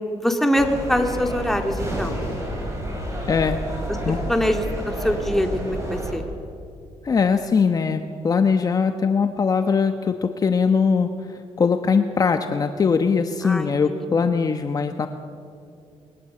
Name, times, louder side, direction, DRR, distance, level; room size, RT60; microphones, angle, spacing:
voice 1, 0.2-2.2 4.3-6.3 13.4-14.1, equal, 5° left, 4 dB, 2.1 m, -23 dB
sound 1, 0.5-6.1, equal, 25° right, 7.5 m, -29 dB
voice 2, 3.3-3.6 4.1-4.2 7.0-15.1, left 5 dB, 35° left, 7 dB, 1.0 m, -21 dB
28.5 x 21.5 x 7.8 m, 2.5 s
cardioid pair, 130°, 11 cm